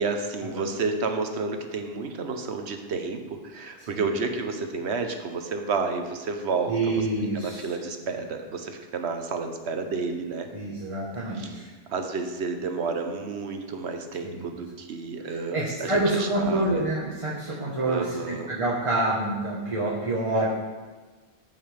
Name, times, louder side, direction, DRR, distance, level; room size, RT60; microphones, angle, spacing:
voice 1, 0.0-7.0 7.3-10.5 11.2-11.5 11.9-16.8 17.9-18.5, right 4 dB, 80° right, 5 dB, 1.2 m, -31 dB
voice 2, 6.7-7.7 10.5-11.7 14.2-14.5 15.2-20.5, right 2 dB, 30° right, -6 dB, 1.4 m, -27 dB
14.0 x 5.6 x 3.4 m, 1.3 s
omnidirectional pair, 1.1 m